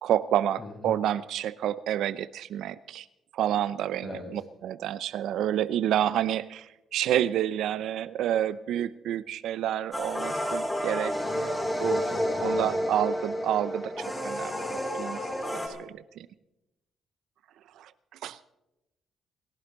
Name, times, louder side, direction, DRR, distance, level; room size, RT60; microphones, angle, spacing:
voice 1, 0.0-3.1 3.3-12.0 12.4-15.2 15.5-16.3 17.8-17.9 18.2-18.4, right 11 dB, 80° right, 16 dB, 0.6 m, -29 dB
voice 2, 0.6-0.9 4.0-4.3 11.8-12.7, left 3 dB, 45° left, -1 dB, 7.1 m, -40 dB
sound 1, 9.9-15.7, equal, 15° left, 4.4 m, -30 dB
28.5 x 11.5 x 4.0 m, 0.93 s
cardioid pair, 90°, 0 cm